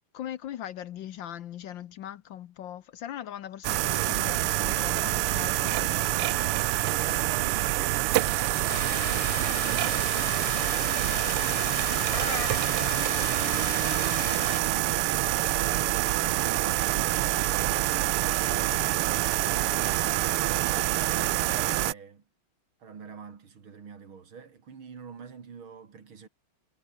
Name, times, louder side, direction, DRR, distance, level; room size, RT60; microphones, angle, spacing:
voice 1, 0.1-6.4 12.6-12.9, left 11 dB, 65° left, 1.5 m, -40 dB
sound 1, 3.6-21.9, right 16 dB, 90° right, 1.6 m, -26 dB
voice 2, 6.9-12.1 12.7-15.0 20.5-22.2 22.8-26.3, right 6 dB, 70° right, 3.3 m, -46 dB
sound 2, 8.7-14.6, left 3 dB, 20° left, 1.3 m, -36 dB
omnidirectional pair, 2.4 m